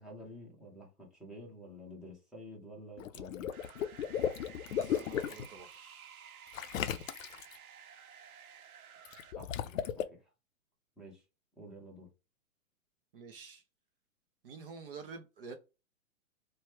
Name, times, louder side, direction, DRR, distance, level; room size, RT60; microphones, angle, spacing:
voice 1, 0.0-3.5 9.3-10.3 11.0-11.2 11.6-12.1, left 1 dB, ahead, 0.7 m, -50 dB
Water / Liquid, 3.0-5.5 6.5-7.6 9.1-10.0, left 9 dB, 65° left, 0.5 m, -35 dB
sound 1, 3.5-9.3, right 7 dB, 80° right, 0.7 m, -54 dB
voice 2, 4.7-5.7 13.1-13.6 14.4-15.5, right 4 dB, 40° right, 0.5 m, -48 dB
3.0 x 2.2 x 2.8 m
hypercardioid pair, 135°, 42 cm